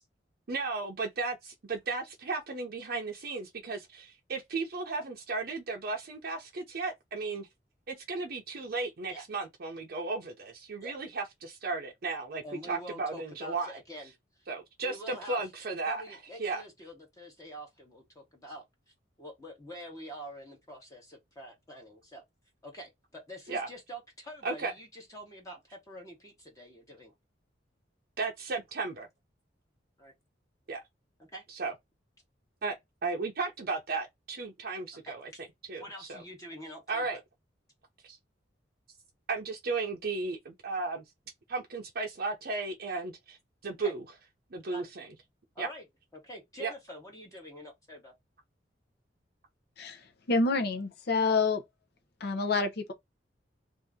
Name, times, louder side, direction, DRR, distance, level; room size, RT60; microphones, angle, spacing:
voice 1, 0.5-7.5 7.9-13.7 14.5-16.0 16.4-16.6 23.5-23.7 24.4-24.7 28.2-29.1 30.7-30.8 31.5-31.7 32.6-32.8 33.0-35.3 35.7-36.2 36.9-37.2 38.0-38.2 39.3-41.0 41.5-43.4 43.6-44.0 44.5-45.1 45.6-45.7 46.6-46.7, right 3 dB, 55° right, 0.6 m, -35 dB
voice 2, 12.4-14.1 14.8-15.4 15.9-18.6 19.2-22.2 22.6-27.1 28.5-28.6 30.0-30.1 31.2-31.4 35.1-35.4 35.8-37.2 43.8-43.9 44.7-44.9 45.5-45.8 46.1-48.1, equal, 20° left, 1.0 m, -46 dB
voice 3, 49.8-51.6 52.2-52.9, left 3 dB, 60° left, 0.6 m, -28 dB
2.7 x 2.5 x 3.5 m
head